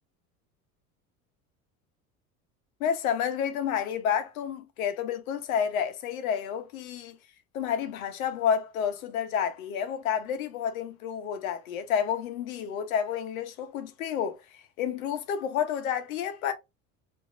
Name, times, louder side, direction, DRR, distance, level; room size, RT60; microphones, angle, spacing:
voice 1, 2.8-7.2 7.5-14.4 14.8-16.5, left 8 dB, 75° left, 1.0 m, -30 dB
4.7 x 2.9 x 2.5 m
hypercardioid pair, 70°, 42 cm